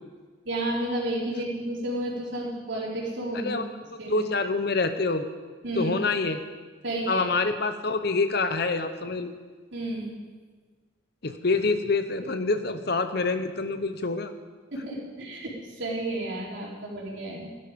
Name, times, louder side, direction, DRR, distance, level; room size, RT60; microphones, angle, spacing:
voice 1, 0.4-3.5 4.0-4.3 5.6-5.9 6.8-7.2 9.7-10.1 14.7-17.7, right 1 dB, 65° right, -4 dB, 4.2 m, -31 dB
voice 2, 4.1-5.3 5.7-6.4 7.1-9.3 11.2-14.3, left 3 dB, 55° left, 8 dB, 0.8 m, -26 dB
16.5 x 12.0 x 5.3 m, 1.4 s
head